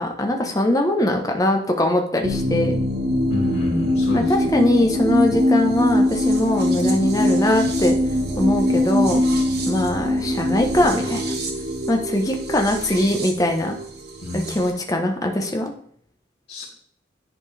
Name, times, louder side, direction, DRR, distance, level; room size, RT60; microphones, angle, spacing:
voice 1, 0.0-2.8 4.1-7.9 8.4-9.2 9.7-11.3 11.9-13.8 14.3-15.7, left 1 dB, 20° left, 3 dB, 0.8 m, -21 dB
sound 1, 2.2-14.7, left 1 dB, 55° right, 1.3 m, -22 dB
voice 2, 3.3-4.3 14.2-14.6 16.5-16.6, left 1 dB, 60° left, -7 dB, 2.6 m, -28 dB
10.0 x 4.3 x 3.3 m, 0.62 s
head